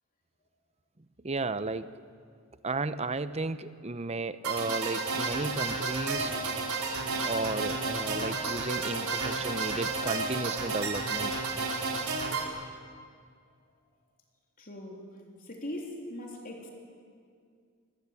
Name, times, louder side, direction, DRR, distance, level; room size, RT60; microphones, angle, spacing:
voice 1, 1.2-2.0 2.6-6.4 7.2-11.3 11.7-11.8, right 3 dB, 30° right, 13 dB, 0.8 m, -34 dB
sound 1, 4.4-12.4, right 3 dB, 85° right, 4.1 m, -32 dB
voice 2, 14.6-15.0 15.4-16.7, left 1 dB, 40° left, 0 dB, 3.6 m, -40 dB
27.0 x 22.0 x 8.4 m, 2.2 s
head